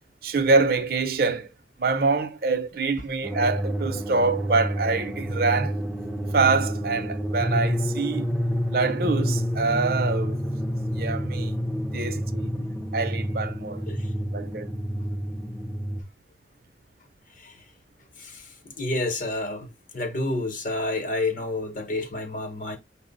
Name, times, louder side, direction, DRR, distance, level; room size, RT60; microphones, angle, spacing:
voice 1, 0.2-1.5 1.8-5.8 6.3-8.3 8.7-10.4 10.9-11.6 11.9-12.5 12.9-13.8 14.3-14.7, right 4 dB, 55° right, 0.6 m, -25 dB
sound 1, 3.2-16.0, equal, 5° right, 0.4 m, -28 dB
voice 2, 18.2-22.8, left 2 dB, 45° left, 0.8 m, -30 dB
5.8 x 2.0 x 3.9 m
head